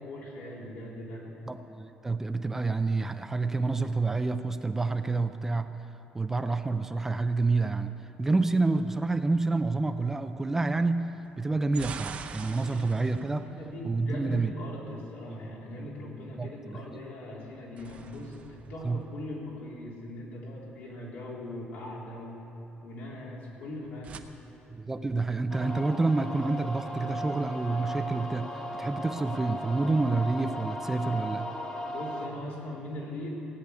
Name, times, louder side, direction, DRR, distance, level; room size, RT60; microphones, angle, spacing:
voice 1, 0.0-1.3 12.6-12.9 13.4-22.4 22.8-24.2 31.9-33.3, left 1 dB, 75° left, -4 dB, 3.6 m, -40 dB
voice 2, 1.5-5.7 6.1-7.9 8.2-13.5 13.8-14.5 16.4-17.0 18.8-19.0 24.8-31.5, right 3 dB, 10° right, 9 dB, 0.4 m, -28 dB
sound 1, 6.6-7.6 11.3-14.6 17.4-19.9 23.6-24.2, right 6 dB, 40° right, 0.7 m, -45 dB
sound 2, 25.5-32.3, equal, 25° left, 1.4 m, -37 dB
16.5 x 8.5 x 9.6 m, 3.0 s
cardioid pair, 170°, 3 cm